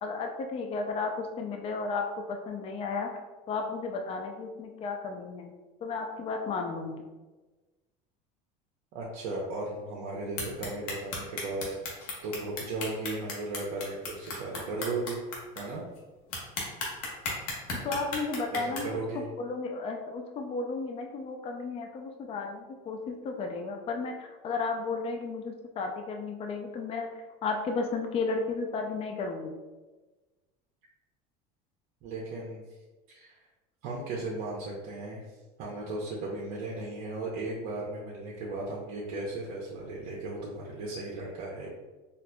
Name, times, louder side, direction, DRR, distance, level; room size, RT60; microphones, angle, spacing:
voice 1, 0.0-3.1 3.5-5.5 5.8-7.1 17.8-18.9 19.4-27.1 27.4-29.6, left 4 dB, 30° left, 3 dB, 0.4 m, -33 dB
voice 2, 8.9-15.2 15.6-15.8 18.5-19.2 32.0-32.6 33.1-33.4 33.8-41.7, right 2 dB, 60° right, -4 dB, 0.7 m, -36 dB
sound 1, 10.4-15.6 16.0-16.1 16.3-18.8, left 4 dB, 85° left, 1.0 m, -34 dB
4.2 x 2.5 x 2.2 m, 1.2 s
supercardioid pair, 115°, 19 cm